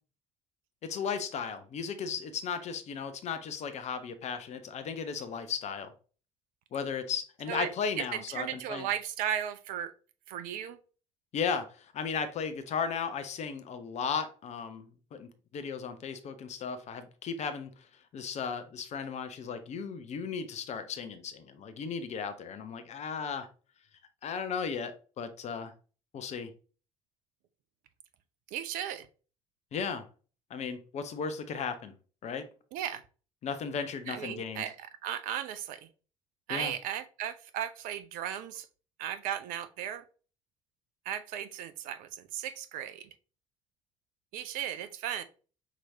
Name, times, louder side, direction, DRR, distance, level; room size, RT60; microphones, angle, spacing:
voice 1, 0.8-5.9 6.7-8.9 11.3-17.7 18.1-23.5 24.2-25.7 26.1-26.5 29.7-30.1 30.5-31.9 32.2-32.5 33.4-34.6 36.5-36.7, left 6 dB, 45° left, 0.8 m, -35 dB
voice 2, 8.0-9.9 10.3-10.8 28.5-29.1 32.7-33.0 34.1-35.9 36.5-38.7 39.0-40.0 41.1-43.1 44.3-45.2, right 10 dB, 55° right, 0.5 m, -36 dB
5.9 x 3.0 x 2.7 m
figure-of-eight pair, 55°, 16 cm